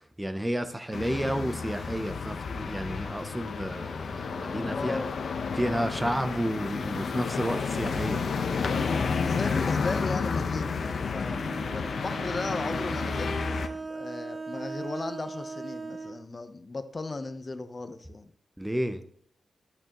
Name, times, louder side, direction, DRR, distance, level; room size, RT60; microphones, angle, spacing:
voice 1, 0.2-5.0 5.5-8.2 18.6-19.0, equal, 10° right, 9 dB, 0.6 m, -31 dB
sound 1, 0.9-13.7, left 5 dB, 75° left, 0.9 m, -31 dB
voice 2, 4.6-5.1 8.8-11.4 11.7-18.3, left 3 dB, 35° left, 10 dB, 0.8 m, -37 dB
Bowed string instrument, 11.2-16.2, right 3 dB, 35° right, 1.4 m, -38 dB
11.5 x 8.7 x 3.0 m, 0.63 s
wide cardioid pair, 120°, 0 cm